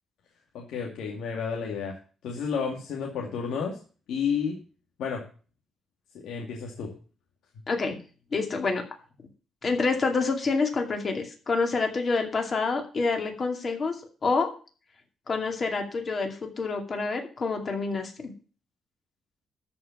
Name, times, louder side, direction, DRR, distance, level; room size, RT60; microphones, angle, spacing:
voice 1, 0.5-2.0 2.2-3.8 4.1-4.6 5.0-5.2 6.1-6.9, left 6 dB, 80° left, 0 dB, 2.2 m, -31 dB
voice 2, 7.7-8.0 8.3-8.8 9.6-14.0 14.2-14.5 15.3-18.3, left 4 dB, 30° left, 4 dB, 2.4 m, -27 dB
13.0 x 5.7 x 7.1 m, 0.37 s
cardioid pair, 180°, 0 cm